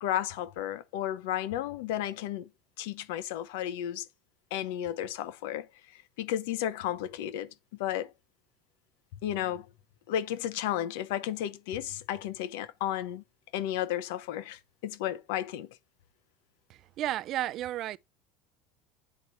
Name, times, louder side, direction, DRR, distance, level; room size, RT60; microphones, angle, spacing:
voice 1, 0.0-2.5 2.8-4.1 4.5-5.7 6.2-7.5 7.8-8.1 9.2-9.7 10.1-13.2 13.5-15.7, left 11 dB, 80° left, 0.9 m, -33 dB
voice 2, 16.7-18.0, right 13 dB, 45° right, 0.4 m, -33 dB
8.3 x 4.1 x 4.6 m
supercardioid pair, 140°, 0 cm